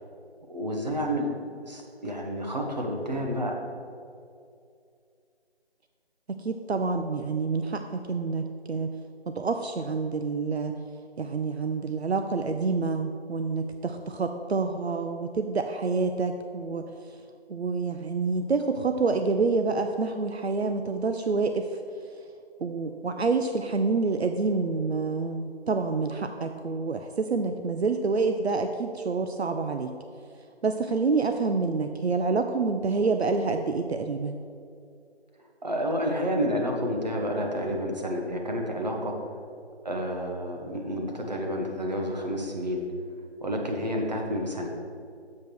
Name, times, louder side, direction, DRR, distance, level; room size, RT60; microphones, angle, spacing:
voice 1, 0.5-1.3 1.6-3.6 35.6-39.1 39.8-42.8 43.4-44.7, equal, 40° right, 1 dB, 1.2 m, -29 dB
voice 2, 6.3-9.0 9.3-10.8 11.2-16.9 17.5-21.7 22.6-29.9 30.6-34.4, right 4 dB, 75° right, 6 dB, 0.6 m, -27 dB
7.3 x 5.0 x 6.2 m, 2.4 s
figure-of-eight pair, 170°, 33 cm